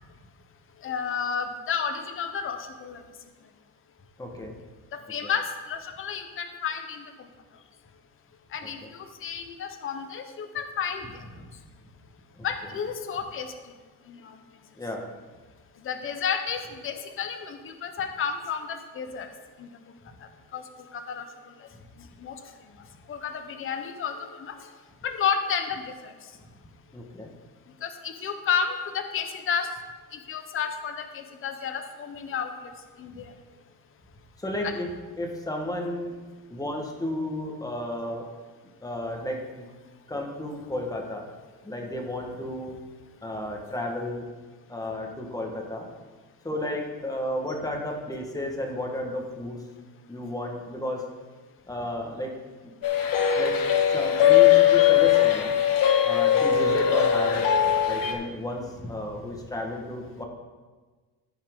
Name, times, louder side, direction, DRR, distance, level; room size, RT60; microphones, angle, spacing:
voice 1, 0.8-3.0 4.9-7.0 8.5-11.1 12.4-13.5 14.1-14.3 15.8-19.3 19.6-19.7 20.5-20.6 21.1-21.2 22.2-22.3 23.1-24.5 25.0-25.9 27.8-29.7 30.1-32.5 33.0-33.3 34.6-34.7, left 7 dB, 35° left, 7 dB, 0.9 m, -31 dB
voice 2, 4.2-4.6 5.2-5.3 8.6-8.7 12.4-12.5 14.8-15.1 26.9-27.3 34.4-34.9 35.2-36.1 36.5-38.2 38.8-39.6 40.1-41.2 41.6-42.8 43.2-44.3 44.7-45.9 46.4-49.6 50.1-51.0 51.7-52.3 52.6-52.8 53.3-53.6 53.9-55.5 56.0-57.5 57.9-60.2, left 1 dB, 10° left, 1 dB, 1.4 m, -32 dB
sound 1, 52.8-58.1, left 10 dB, 65° left, 1.3 m, -20 dB
16.0 x 5.6 x 3.7 m, 1.4 s
cardioid pair, 145°, 36 cm